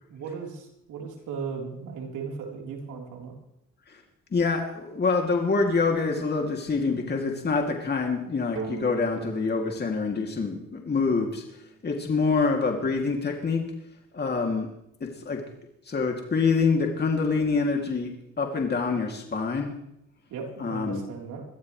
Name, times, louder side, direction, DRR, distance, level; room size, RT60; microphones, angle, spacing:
voice 1, 0.1-3.4 20.3-21.4, right 5 dB, 85° right, 0 dB, 3.9 m, -36 dB
voice 2, 4.3-11.4 11.8-13.6 14.1-14.7 15.0-15.4 15.9-18.1 18.4-19.7 20.6-21.0, left 4 dB, 35° left, 1 dB, 2.7 m, -26 dB
sound 1, 8.6-12.2, right 5 dB, 45° right, 1.9 m, -41 dB
23.0 x 14.5 x 3.3 m, 0.77 s
cardioid pair, 90°, 30 cm